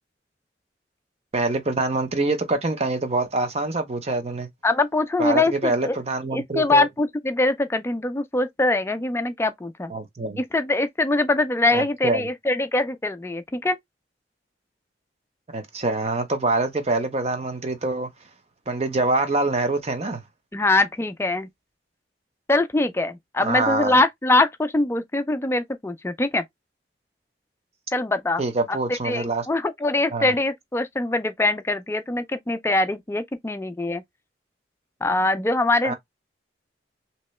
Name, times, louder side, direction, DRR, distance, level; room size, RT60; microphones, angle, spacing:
voice 1, 1.3-4.5 5.2-6.9 9.9-10.4 11.7-12.2 15.5-18.1 18.7-20.2 23.4-24.0 28.4-29.5 30.1-30.4 35.8-35.9, right 2 dB, 35° right, 0.7 m, -25 dB
voice 2, 4.6-6.0 6.3-9.9 10.4-13.8 20.5-21.5 22.5-26.4 27.9-28.4 29.0-34.0 35.0-35.9, left 2 dB, 15° left, 0.4 m, -23 dB
3.2 x 2.9 x 3.1 m
head